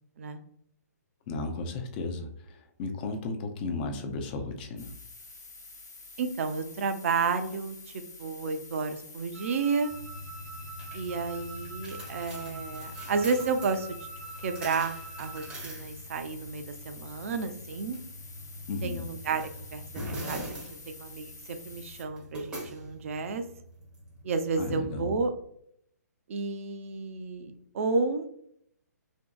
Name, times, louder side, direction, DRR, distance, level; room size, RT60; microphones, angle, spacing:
voice 1, 1.3-4.9 18.7-19.0 24.6-25.1, left 3 dB, 30° left, 5 dB, 0.4 m, -34 dB
sound 1, 4.8-22.0, left 3 dB, 85° left, 0.7 m, -49 dB
voice 2, 6.2-7.8 8.2-9.9 10.9-14.0 14.4-18.0 18.8-20.6 20.9-23.4 24.2-25.3 26.3-28.3, right 4 dB, 50° right, 8 dB, 0.4 m, -31 dB
Wind instrument woodwind instrument, 9.3-15.6, right 3 dB, 90° right, 0.9 m, -45 dB
sound 2, 9.9-24.6, equal, 10° right, 0.6 m, -43 dB
2.7 x 2.6 x 2.3 m, 0.69 s
hypercardioid pair, 140°, 9 cm